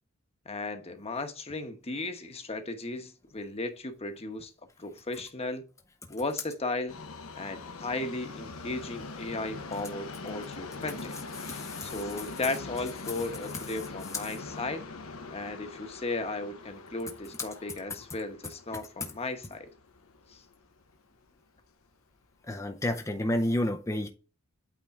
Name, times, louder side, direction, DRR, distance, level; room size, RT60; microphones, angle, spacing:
voice 1, 0.5-4.5 4.8-5.7 6.1-7.0 7.3-11.1 11.8-14.8 15.3-19.7 20.3-20.4, left 2 dB, 30° left, 1.1 m, -35 dB
Subway metro underground, 6.9-21.0 21.3-21.4 22.2-22.3 22.6-22.7 23.3-23.4, left 3 dB, 80° left, 1.0 m, -43 dB
voice 2, 11.4-11.9 22.5-24.1, left 1 dB, 15° left, 0.6 m, -30 dB
8.6 x 3.7 x 3.6 m
head